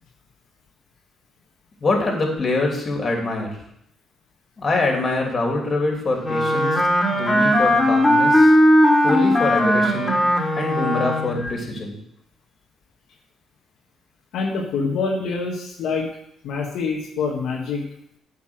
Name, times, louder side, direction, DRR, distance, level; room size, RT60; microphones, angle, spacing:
voice 1, 1.8-3.5 4.6-6.8 7.1-8.5 9.0-10.2 10.6-12.0, left 2 dB, 40° left, 1 dB, 2.8 m, -24 dB
Wind instrument woodwind instrument, 6.2-11.6, equal, 10° left, 4.2 m, -18 dB
voice 2, 14.3-16.1 16.4-17.8, left 4 dB, 80° left, -1 dB, 1.4 m, -25 dB
8.9 x 5.7 x 6.2 m, 0.74 s
cardioid pair, 90°, 0 cm